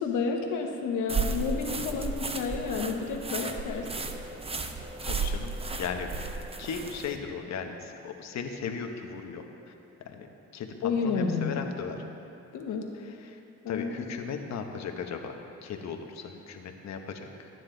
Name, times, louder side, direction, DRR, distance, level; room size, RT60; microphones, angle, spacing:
voice 1, 0.0-4.0 10.8-11.7 12.5-12.9 13.6-14.1, left 5 dB, 85° left, 2 dB, 1.3 m, -30 dB
sound 1, 1.1-7.2, right 4 dB, 20° right, 0.7 m, -34 dB
voice 2, 5.0-5.5 5.8-6.2 6.6-9.7 10.0-10.3 10.5-10.7 11.0-12.0 13.0-13.4 13.7-15.4 15.6-17.3, left 6 dB, 65° left, 4 dB, 1.1 m, -37 dB
13.0 x 9.8 x 3.9 m, 2.8 s
cardioid pair, 90°, 30 cm